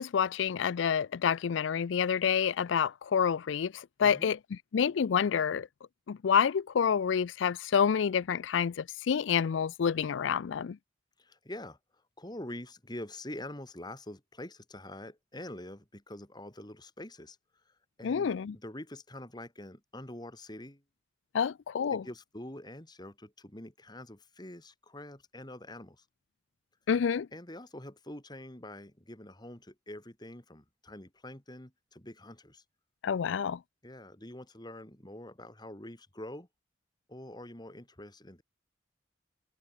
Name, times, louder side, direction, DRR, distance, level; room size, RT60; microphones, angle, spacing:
voice 1, 0.0-4.4 4.7-5.7 6.1-10.8 18.0-18.6 21.3-22.0 26.9-27.3 33.0-33.6, left 7 dB, 80° left, 0.4 m, -28 dB
voice 2, 4.0-4.3 11.2-11.8 12.2-17.4 18.0-20.8 21.9-26.0 27.3-32.6 33.8-36.5 37.1-38.4, left 1 dB, 20° left, 3.3 m, -45 dB
head